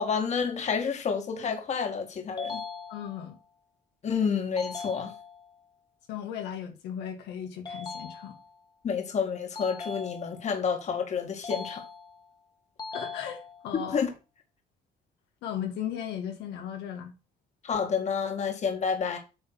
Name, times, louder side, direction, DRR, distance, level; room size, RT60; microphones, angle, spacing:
voice 1, 0.0-2.6 4.0-5.1 8.8-11.8 13.7-14.1 17.6-19.2, left 6 dB, 45° left, 2.0 m, -29 dB
sound 1, 2.4-3.4 4.6-5.6 7.7-8.7 9.6-10.6 11.4-12.3 12.8-13.8, left 4 dB, 25° left, 1.5 m, -40 dB
voice 2, 2.9-3.4 6.1-8.3 12.9-14.0 15.4-17.1, left 9 dB, 85° left, 2.1 m, -36 dB
8.8 x 3.6 x 6.1 m
cardioid pair, 110°, 17 cm